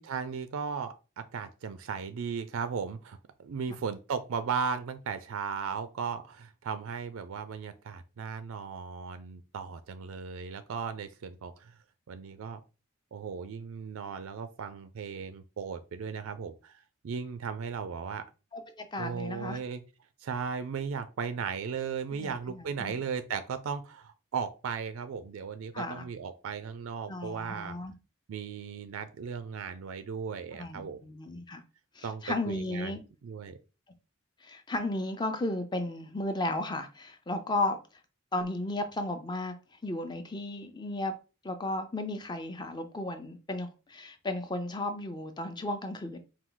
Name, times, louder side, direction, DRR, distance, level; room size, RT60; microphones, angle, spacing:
voice 1, 0.0-11.7 12.1-12.6 13.1-18.3 19.0-19.8 20.2-27.8 28.3-31.0 32.0-33.6, right 6 dB, 75° right, 0.4 m, -36 dB
voice 2, 18.5-19.6 22.1-23.0 25.7-26.0 27.1-27.9 30.6-31.6 32.0-33.0 34.4-37.8 38.3-39.5 39.8-41.1 41.4-46.2, left 2 dB, 20° left, 0.4 m, -34 dB
4.5 x 2.3 x 3.8 m
head